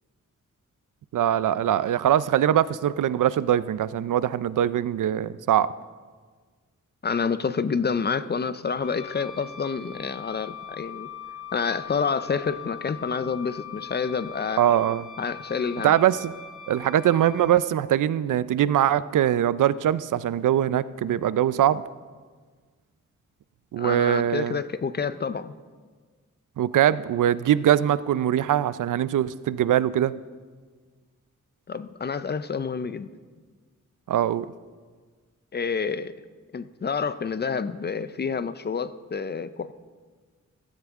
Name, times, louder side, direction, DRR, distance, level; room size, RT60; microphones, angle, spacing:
voice 1, 1.1-5.7 14.6-15.0 15.8-16.3 16.7-21.8 23.7-24.6 26.6-30.1 34.1-34.5, right 11 dB, 80° right, 17 dB, 0.5 m, -22 dB
voice 2, 7.0-11.1 11.5-14.6 15.2-15.9 23.8-25.5 31.7-33.1 35.5-36.1 36.5-39.7, left 5 dB, 35° left, 14 dB, 0.4 m, -28 dB
Wind instrument woodwind instrument, 8.8-17.6, left 7 dB, 75° left, 1.7 m, -41 dB
15.5 x 15.5 x 3.6 m, 1.5 s
wide cardioid pair, 160°, 31 cm